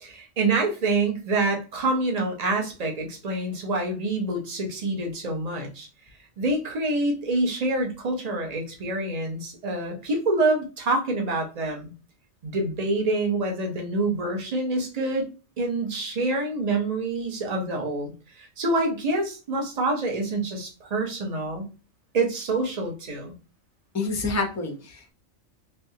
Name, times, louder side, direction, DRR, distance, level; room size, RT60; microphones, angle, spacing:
voice 1, 0.0-5.9 6.4-11.9 12.4-15.3 15.6-18.1 18.4-21.7 22.1-23.3, right 2 dB, 35° right, 1 dB, 0.9 m, -26 dB
voice 2, 23.9-25.1, left 3 dB, 15° left, 2 dB, 0.6 m, -28 dB
3.5 x 2.8 x 2.7 m, 0.33 s
omnidirectional pair, 1.3 m